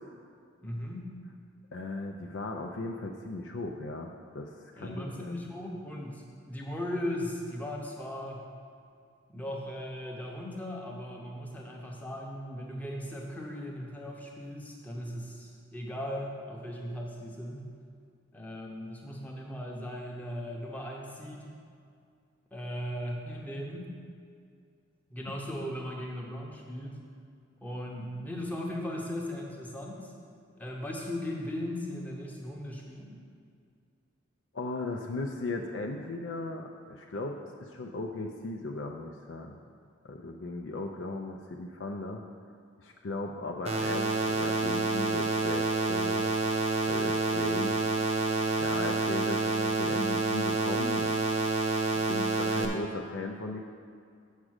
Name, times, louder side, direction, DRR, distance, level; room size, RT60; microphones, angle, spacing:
voice 1, 0.6-1.2 4.8-8.5 9.3-17.7 18.3-21.5 22.5-23.9 25.1-27.0 27.6-30.1 30.6-33.1, left 1 dB, 10° left, -1 dB, 0.8 m, -38 dB
voice 2, 1.7-5.3 25.3-25.4 34.5-39.6 40.0-42.2 42.8-46.3 46.9-47.8 48.6-51.3 51.9-53.6, left 2 dB, 60° left, 1 dB, 0.5 m, -37 dB
sound 1, 43.7-52.7, right 3 dB, 30° right, 0.8 m, -28 dB
7.3 x 4.9 x 6.4 m, 2.3 s
head